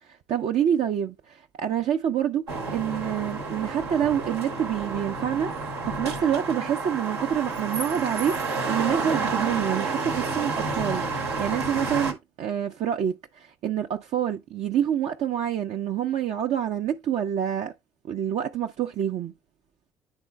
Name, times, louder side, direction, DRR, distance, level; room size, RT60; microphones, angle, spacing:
voice 1, 0.1-8.4 8.7-11.0 11.4-17.7 18.1-19.3, right 9 dB, 55° right, 0.6 m, -27 dB
sound 1, 2.5-12.1, right 3 dB, 85° right, 0.9 m, -30 dB
9.8 x 3.8 x 3.2 m
figure-of-eight pair, 45°, 14 cm